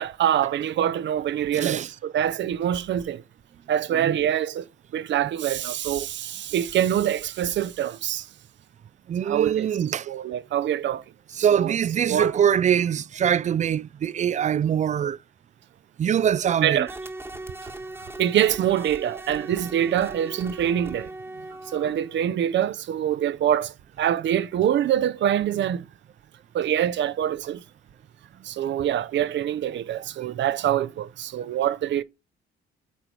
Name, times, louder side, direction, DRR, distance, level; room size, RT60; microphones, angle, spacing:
voice 1, 0.0-3.2 3.7-4.7 4.9-8.3 9.2-9.7 10.1-11.0 11.5-11.7 12.1-12.3 16.6-16.9 17.6-17.7 18.2-21.1 21.7-25.9 26.5-27.6 28.4-32.0, right 10 dB, 65° right, 0.7 m, -25 dB
voice 2, 1.5-1.9 3.9-4.2 5.2-5.3 9.1-10.1 11.4-15.2 16.0-16.9, right 9 dB, 35° right, 0.4 m, -23 dB
sound 1, 16.9-22.3, right 2 dB, 10° right, 1.2 m, -39 dB
8.4 x 4.4 x 3.3 m
cardioid pair, 90°, 20 cm